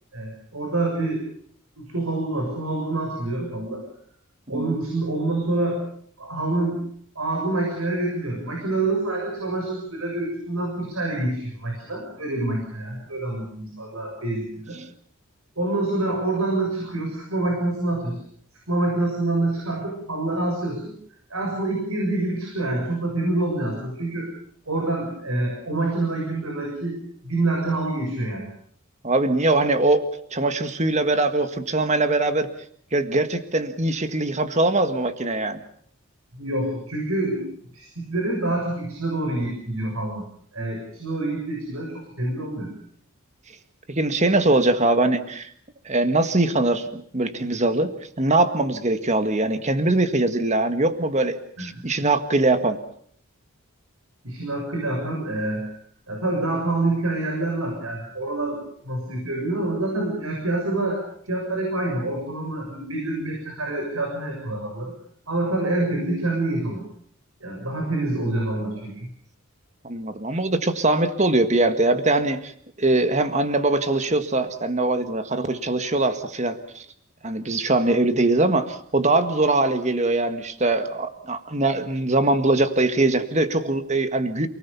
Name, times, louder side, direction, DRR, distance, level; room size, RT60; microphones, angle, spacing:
voice 1, 0.1-1.3 1.8-3.8 4.5-5.8 6.2-6.8 7.2-14.8 15.6-18.2 18.7-20.9 21.3-24.3 24.7-28.5 36.3-37.4 37.7-40.2 40.5-42.7 51.6-51.7 54.2-55.7 56.1-64.9 65.3-66.9 67.4-69.1, right 2 dB, 85° right, 1 dB, 7.3 m, -26 dB
voice 2, 29.0-30.0 30.3-32.5 32.9-35.6 43.9-45.5 45.9-52.8 69.8-72.5 72.8-76.9 77.2-84.5, right 2 dB, 35° right, 9 dB, 1.8 m, -22 dB
29.0 x 19.0 x 7.1 m, 0.62 s
head